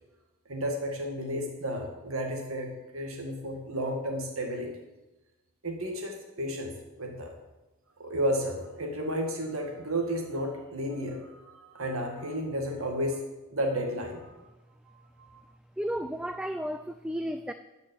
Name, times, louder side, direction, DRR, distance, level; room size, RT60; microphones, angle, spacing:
voice 1, 0.5-4.7 5.6-7.3 8.0-13.2 13.5-14.4 15.2-15.4, equal, 65° right, 2 dB, 1.9 m, -32 dB
voice 2, 15.8-17.5, equal, 5° right, 9 dB, 0.3 m, -33 dB
13.5 x 5.3 x 8.6 m, 1.1 s
head